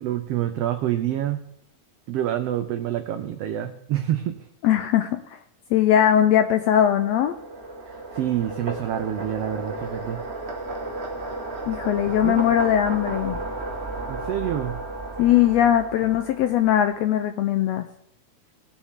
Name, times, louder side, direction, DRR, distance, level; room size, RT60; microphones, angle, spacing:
voice 1, 0.0-1.4 2.1-4.3 8.1-10.2 12.2-12.4 14.1-14.7, right 11 dB, 90° right, 8 dB, 1.3 m, -27 dB
voice 2, 4.6-5.2 5.7-7.3 11.7-13.4 15.2-17.9, left 10 dB, 80° left, 8 dB, 1.5 m, -20 dB
sound 1, 6.3-16.9, right 2 dB, 35° right, 1.1 m, -34 dB
19.0 x 7.2 x 3.6 m, 0.76 s
omnidirectional pair, 3.5 m